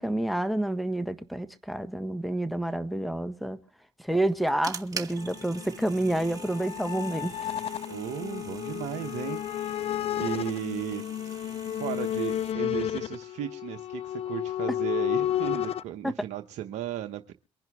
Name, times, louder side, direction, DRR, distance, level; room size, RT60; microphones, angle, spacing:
voice 1, 0.0-3.6 4.0-7.3 16.0-16.1, right 1 dB, ahead, 1.4 m, -29 dB
sound 1, 4.1-12.5, right 5 dB, 25° right, 2.4 m, -44 dB
sound 2, 5.2-15.8, left 11 dB, 45° left, 0.6 m, -32 dB
voice 2, 7.9-11.0 11.7-17.3, right 12 dB, 60° right, 1.0 m, -35 dB
24.0 x 10.5 x 3.5 m
hypercardioid pair, 60°, 13 cm